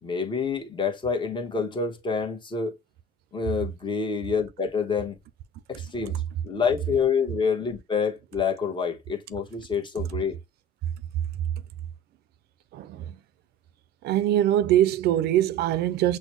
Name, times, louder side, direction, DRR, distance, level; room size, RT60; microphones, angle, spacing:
voice 1, 0.0-2.7 3.3-5.2 5.7-10.4, left 5 dB, 30° left, 1.1 m, -27 dB
voice 2, 12.7-13.2 14.0-16.2, right 12 dB, 70° right, 0.5 m, -23 dB
6.2 x 2.2 x 3.1 m
cardioid pair, 110°, 17 cm